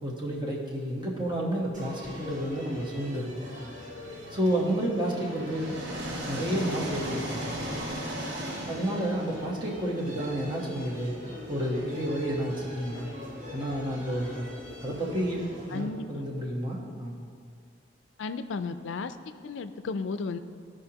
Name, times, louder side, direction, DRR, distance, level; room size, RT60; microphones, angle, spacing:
voice 1, 0.0-3.5 4.3-5.8 6.2-7.5 8.7-11.1 11.5-13.1 13.5-14.5 14.8-17.2, right 1 dB, 25° right, -4 dB, 1.2 m, -30 dB
sound 1, 1.7-15.8, left 1 dB, 40° right, 2.0 m, -43 dB
sound 2, 4.5-10.3, right 1 dB, 80° right, 1.5 m, -37 dB
voice 2, 15.7-16.2 18.2-20.4, left 4 dB, 85° left, 11 dB, 0.4 m, -34 dB
14.0 x 5.0 x 2.9 m, 2.3 s
head